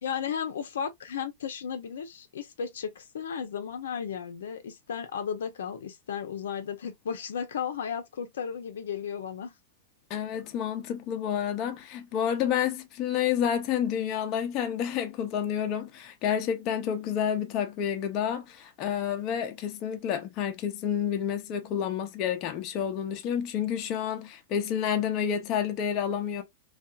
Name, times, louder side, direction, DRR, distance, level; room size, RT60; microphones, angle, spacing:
voice 1, 0.0-9.5, left 7 dB, 85° left, 0.6 m, -34 dB
voice 2, 10.1-26.4, left 9 dB, 40° left, 0.5 m, -29 dB
2.7 x 2.3 x 2.2 m
hypercardioid pair, 140°, 0 cm